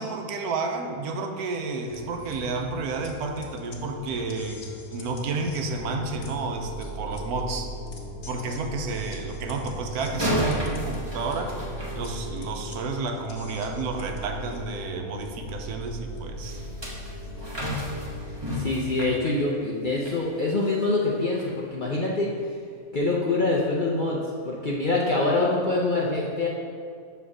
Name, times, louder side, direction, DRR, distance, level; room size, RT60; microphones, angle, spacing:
voice 1, 0.0-4.6 4.9-7.7 8.3-11.5 11.9-16.6, right 3 dB, 85° right, 4 dB, 1.2 m, -31 dB
sound 1, 1.9-18.4, right 1 dB, 80° left, 1.3 m, -38 dB
sound 2, 10.1-12.6 16.4-20.2 20.6-20.8 21.4-21.5, equal, 20° right, 1.2 m, -32 dB
voice 2, 18.5-22.3 22.9-24.2 24.4-26.5, left 2 dB, 50° left, -3 dB, 0.6 m, -25 dB
7.3 x 3.4 x 6.0 m, 2.2 s
omnidirectional pair, 1.6 m